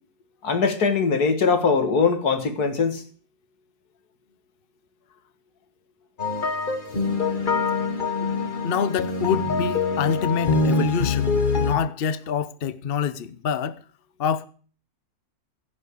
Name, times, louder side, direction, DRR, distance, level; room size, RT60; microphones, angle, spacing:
voice 1, 0.4-3.0, left 5 dB, 75° left, 2.1 m, -21 dB
sound 1, 6.2-11.7, left 3 dB, 30° left, 1.5 m, -24 dB
voice 2, 8.6-11.3 11.6-13.8 14.2-14.5, left 7 dB, 50° left, 0.7 m, -26 dB
16.0 x 5.6 x 8.3 m
omnidirectional pair, 1.7 m